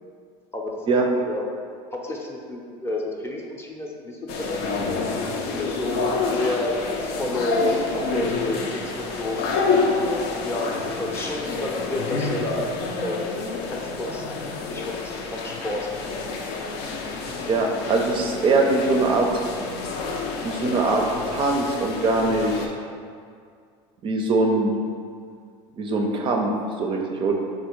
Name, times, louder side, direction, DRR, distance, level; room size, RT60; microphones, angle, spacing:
voice 1, 0.5-0.8 1.3-1.5 1.9-4.6 5.2-9.4 10.4-12.7 13.0-13.4 13.7-14.2 14.6-15.9, left 1 dB, 15° left, -1 dB, 0.5 m, -30 dB
sound 1, 4.3-22.7, left 4 dB, 75° left, 0.5 m, -28 dB
voice 2, 17.5-19.3 20.4-22.7 24.0-24.7 25.8-26.5 26.8-27.3, right 3 dB, 35° right, 1 dB, 0.4 m, -22 dB
3.6 x 2.4 x 4.4 m, 2.2 s
supercardioid pair, 115°, 15 cm